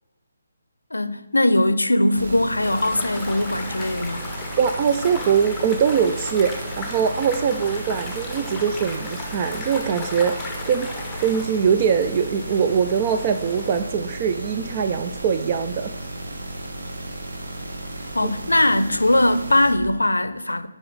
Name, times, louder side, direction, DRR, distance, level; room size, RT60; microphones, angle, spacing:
voice 1, 0.9-4.3 18.1-20.7, left 1 dB, 85° left, 0.5 m, -20 dB
sound 1, 2.2-19.7, right 1 dB, 65° right, 1.3 m, -34 dB
sound 2, 2.6-13.8, left 2 dB, 5° left, 1.0 m, -36 dB
voice 2, 4.6-10.9 11.2-15.9 18.2-18.3, right 7 dB, 30° right, 0.3 m, -22 dB
8.4 x 5.2 x 3.9 m
figure-of-eight pair, 145°, 0 cm